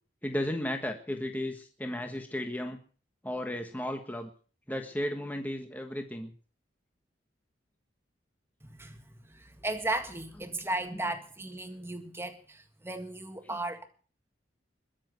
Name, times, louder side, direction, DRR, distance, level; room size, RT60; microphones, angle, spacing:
voice 1, 0.2-2.8 3.2-4.3 4.7-6.3 10.4-10.5 10.9-11.1 13.4-13.6, left 1 dB, 10° left, 1.3 m, -34 dB
voice 2, 8.6-13.9, right 2 dB, 15° right, 1.8 m, -36 dB
21.5 x 7.2 x 8.0 m
head